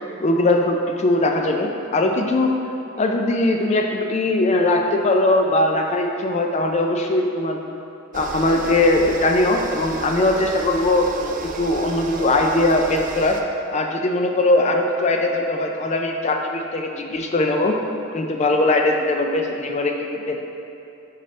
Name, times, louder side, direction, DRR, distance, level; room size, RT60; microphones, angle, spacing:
voice 1, 0.2-2.5 3.0-7.6 8.1-13.4 13.7-20.4, left 2 dB, 35° left, 3 dB, 0.4 m, -20 dB
sound 1, 8.1-13.4, right 3 dB, 40° right, 0.4 m, -32 dB
7.4 x 4.1 x 3.2 m, 2.9 s
head